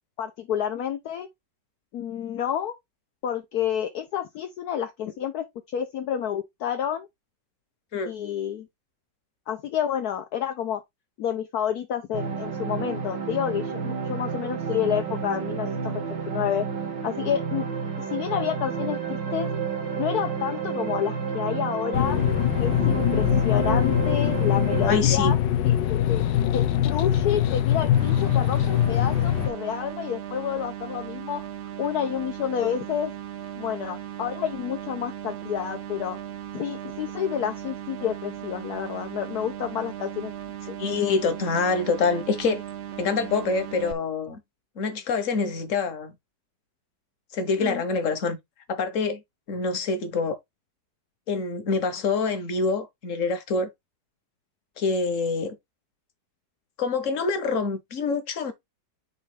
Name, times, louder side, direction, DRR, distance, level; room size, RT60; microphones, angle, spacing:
voice 1, 0.2-1.3 1.9-2.7 3.2-7.1 8.0-8.7 9.5-10.8 11.2-16.6 17.0-17.6 18.0-19.5 20.0-22.2 22.6-25.4 25.6-26.2 26.5-31.4 31.8-33.1 33.6-36.2 36.5-40.3 40.7-40.8 47.6-47.8, left 9 dB, 65° left, 1.3 m, -29 dB
sound 1, 12.1-25.0, right 6 dB, 90° right, 2.3 m, -30 dB
sound 2, 21.9-29.5, left 11 dB, 85° left, 1.5 m, -22 dB
voice 2, 24.9-25.3 40.8-42.6 43.0-44.4 44.8-46.1 47.3-48.4 48.7-49.2 49.5-50.4 51.3-53.7 54.8-55.6 56.8-58.5, left 4 dB, 50° left, 1.5 m, -26 dB
sound 3, 27.9-43.9, right 11 dB, 65° right, 0.6 m, -37 dB
6.6 x 3.1 x 5.1 m
omnidirectional pair, 1.9 m